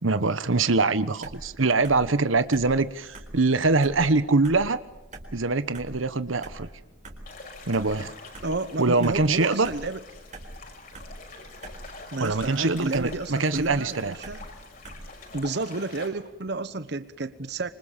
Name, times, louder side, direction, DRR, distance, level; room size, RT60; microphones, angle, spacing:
voice 1, 0.0-4.8 5.3-6.7 7.7-8.1 8.8-9.7 12.2-14.1, right 3 dB, 80° right, 13 dB, 1.2 m, -23 dB
sound 1, 1.2-15.4, right 1 dB, 40° right, 4.2 m, -45 dB
sound 2, 7.3-16.1, left 3 dB, 45° left, 5.9 m, -46 dB
voice 2, 8.4-10.0 12.1-14.4 15.3-17.7, right 2 dB, 55° right, 12 dB, 1.1 m, -31 dB
27.0 x 25.0 x 7.4 m, 0.96 s
head